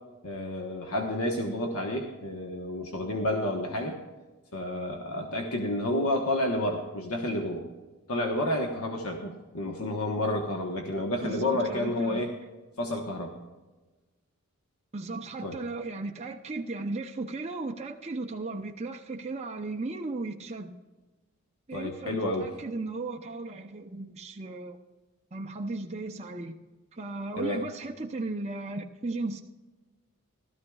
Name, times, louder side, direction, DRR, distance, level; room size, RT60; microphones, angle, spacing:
voice 1, 0.2-4.0 4.5-7.7 8.1-12.3 12.8-13.4 15.4-15.6 21.7-22.5 27.4-27.6, left 1 dB, 80° left, 1 dB, 1.2 m, -30 dB
voice 2, 11.2-12.2 14.9-20.7 21.7-24.8 25.3-26.6 26.9-29.4, right 3 dB, 30° right, 1 dB, 0.6 m, -36 dB
16.5 x 13.0 x 2.4 m, 1.2 s
head